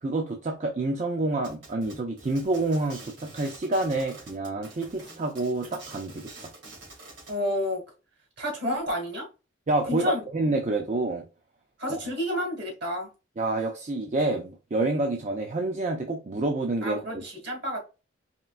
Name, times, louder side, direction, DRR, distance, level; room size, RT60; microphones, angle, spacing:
voice 1, 0.0-6.2 9.7-11.2 11.9-12.0 13.4-17.2, right 2 dB, 40° right, 0.5 m, -28 dB
sound 1, 1.4-7.4, right 2 dB, 80° right, 2.2 m, -47 dB
voice 2, 7.3-7.8 8.4-9.3 9.9-10.2 11.8-13.1 16.8-17.8, left 1 dB, 60° right, 1.8 m, -30 dB
4.3 x 3.4 x 2.4 m
head